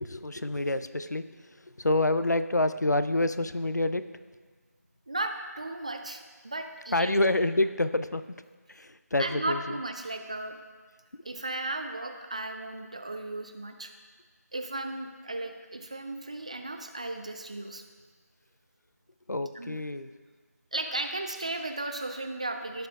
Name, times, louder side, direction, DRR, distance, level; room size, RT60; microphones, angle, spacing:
voice 1, 0.0-4.1 6.9-8.4 8.7-9.8 19.3-20.1, left 2 dB, 85° left, 12 dB, 0.5 m, -28 dB
voice 2, 5.1-7.1 9.2-10.6 11.2-13.9 14.5-17.8 19.6-19.8 20.7-22.9, right 2 dB, 25° right, 6 dB, 0.3 m, -35 dB
15.5 x 5.7 x 2.4 m, 1.5 s
figure-of-eight pair, 165°, 9 cm